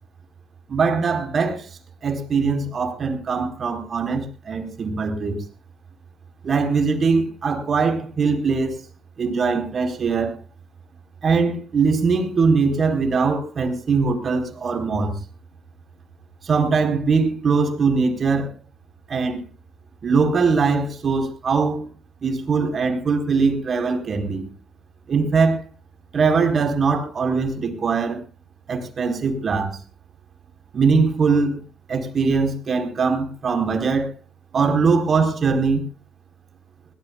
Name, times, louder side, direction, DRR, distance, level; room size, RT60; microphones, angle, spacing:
voice 1, 0.7-1.6 2.0-5.4 6.4-8.8 9.2-10.4 11.2-15.1 16.4-18.5 19.1-19.4 20.0-21.9 22.2-24.4 25.1-25.6 26.1-28.2 28.7-29.8 30.7-31.6 31.9-34.1 34.5-35.8, right 4 dB, 50° right, 4.4 m, -21 dB
21.5 x 18.0 x 2.4 m
supercardioid pair, 55°, 0 cm